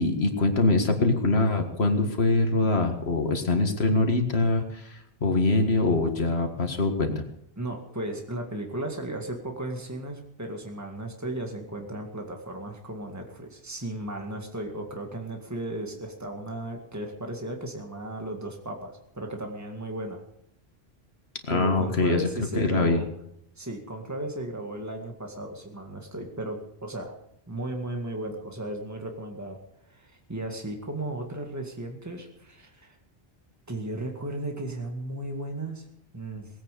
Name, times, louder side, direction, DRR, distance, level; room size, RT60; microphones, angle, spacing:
voice 1, 0.0-7.3 21.5-23.0, left 2 dB, 80° left, 5 dB, 2.0 m, -24 dB
voice 2, 7.6-20.2 21.5-23.1 23.6-27.1 27.5-29.6 29.9-33.0 33.7-35.9 36.1-36.5, right 1 dB, 15° right, 3 dB, 2.1 m, -35 dB
19.5 x 8.8 x 6.8 m, 0.75 s
omnidirectional pair, 1.1 m